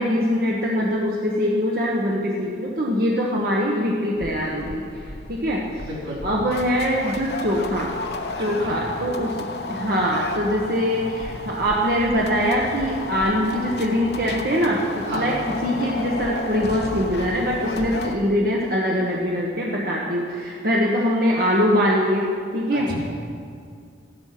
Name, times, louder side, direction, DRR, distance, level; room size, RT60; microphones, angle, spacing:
voice 1, 0.0-4.9 5.3-5.6 6.2-7.9 8.4-22.9, equal, 50° right, -3 dB, 1.3 m, -23 dB
sound 1, 4.2-18.1, left 2 dB, 55° left, 1.0 m, -33 dB
voice 2, 5.8-6.2 8.4-8.8 15.0-15.3 22.7-22.9, equal, 80° right, -6 dB, 4.6 m, -32 dB
15.0 x 12.0 x 6.0 m, 2.3 s
head